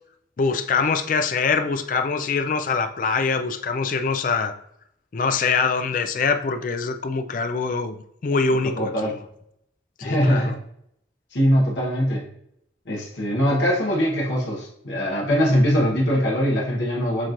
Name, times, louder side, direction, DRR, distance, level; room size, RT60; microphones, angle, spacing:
voice 1, 0.4-4.5 5.1-8.0 8.2-9.1 10.0-10.6, left 4 dB, 45° left, 7 dB, 0.3 m, -24 dB
voice 2, 8.6-9.1 10.0-10.5 11.3-12.3 12.9-17.3, equal, 75° left, -3 dB, 1.0 m, -22 dB
7.3 x 2.9 x 2.5 m, 0.74 s
head